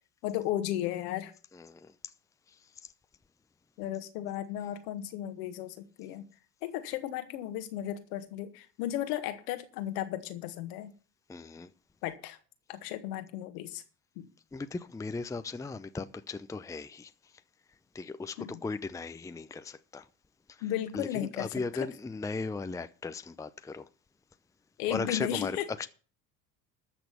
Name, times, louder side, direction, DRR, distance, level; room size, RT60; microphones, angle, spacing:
voice 1, 0.2-1.3 3.8-6.3 6.6-10.9 12.0-12.4 12.7-13.8 14.1-14.3 18.4-18.5 20.6-21.5 24.8-25.7, left 12 dB, 70° left, 1.8 m, -35 dB
voice 2, 1.5-1.9 11.3-11.7 14.5-17.1 17.9-20.1 20.5-20.7 20.9-23.8 24.9-25.9, left 4 dB, 5° left, 0.7 m, -37 dB
13.5 x 6.1 x 8.3 m
hypercardioid pair, 70°, 49 cm